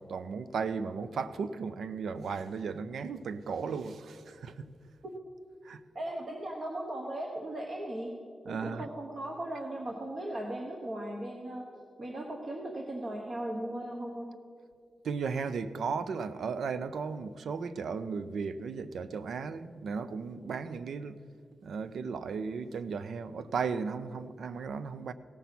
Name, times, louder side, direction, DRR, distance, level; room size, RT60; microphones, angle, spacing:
voice 1, 0.0-4.7 5.6-5.8 8.5-8.9 15.0-21.2 21.6-25.1, right 5 dB, 85° right, 0.5 m, -35 dB
voice 2, 5.9-8.1 8.5-11.7 12.0-14.3, right 1 dB, 40° right, 1.1 m, -37 dB
16.5 x 7.0 x 5.9 m
wide cardioid pair, 130°, 0 cm